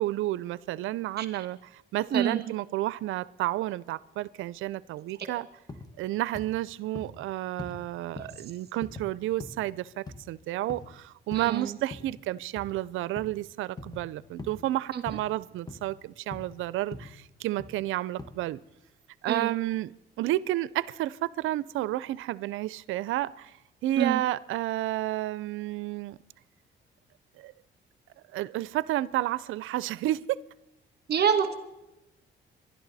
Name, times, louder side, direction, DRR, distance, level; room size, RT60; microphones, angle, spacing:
voice 1, 0.0-5.5 6.0-18.6 19.2-23.5 23.8-26.2 27.4-27.5 28.3-30.4, right 15 dB, 85° right, 0.5 m, -31 dB
voice 2, 2.1-2.4 8.2-8.3 11.3-11.8 14.9-15.0 19.3-19.5 24.0-24.2 31.1-31.5, right 7 dB, 55° right, 1.5 m, -26 dB
sound 1, 5.7-5.9 6.3-6.5 7.0-7.2 7.6-7.8 8.2-8.4 8.8-9.1 9.4-9.7 10.1-10.3 10.7-10.9 11.3-11.5 11.9-12.2 12.6-12.8 13.2-13.4 13.8-14.0 14.4-14.6 15.1-15.3 15.7-15.9 16.3-16.6 16.9-17.1 17.6-17.8 18.2-18.3, left 3 dB, 20° left, 1.6 m, -42 dB
26.5 x 12.0 x 4.1 m
cardioid pair, 90°, 20 cm